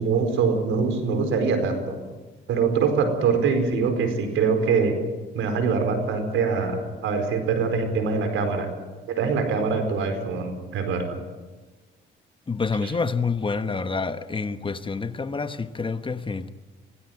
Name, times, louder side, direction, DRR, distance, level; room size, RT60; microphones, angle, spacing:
voice 1, 0.0-2.0 2.5-5.0 5.3-8.7 9.1-11.2, right 5 dB, 80° right, 4.7 m, -23 dB
voice 2, 12.5-16.5, left 4 dB, 25° left, 1.2 m, -27 dB
24.0 x 17.0 x 9.4 m
cardioid pair, 90°, 20 cm